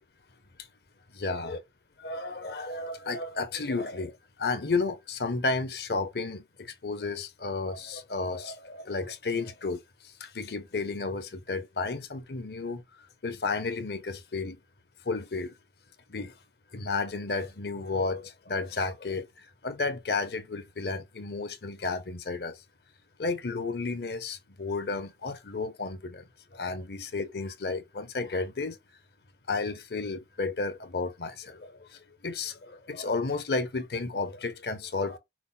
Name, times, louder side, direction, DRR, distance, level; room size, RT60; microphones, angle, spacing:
voice 1, 1.2-1.6 2.0-12.8 13.2-14.6 15.0-15.5 16.1-16.4 16.7-22.6 23.2-26.2 26.5-28.8 29.5-35.2, left 3 dB, 65° left, 0.8 m, -32 dB
6.1 x 2.1 x 4.1 m
head